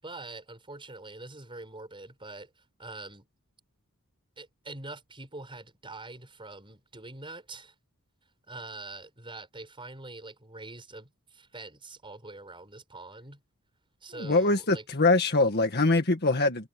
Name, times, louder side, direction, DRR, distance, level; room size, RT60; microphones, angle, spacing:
voice 1, 0.0-2.5 2.8-3.2 4.4-7.7 8.5-13.4 14.0-14.8, right 2 dB, 25° right, 5.6 m, -44 dB
voice 2, 14.2-16.7, left 2 dB, 50° left, 1.8 m, -23 dB
head